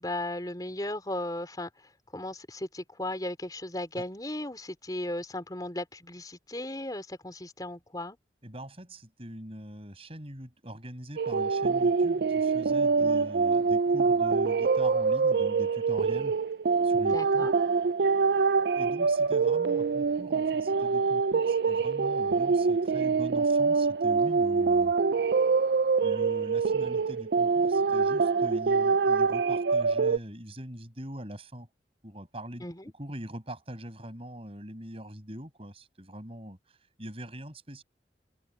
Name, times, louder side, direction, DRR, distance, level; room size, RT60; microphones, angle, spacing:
voice 1, 0.0-8.2 13.0-13.3 17.1-17.5 32.6-32.9, left 1 dB, 20° left, 4.2 m, -36 dB
voice 2, 8.4-16.4 16.8-17.5 18.7-24.9 26.0-31.7 32.0-37.8, equal, 35° right, 6.3 m, -42 dB
sound 1, 11.2-30.2, right 4 dB, 65° right, 0.4 m, -25 dB
head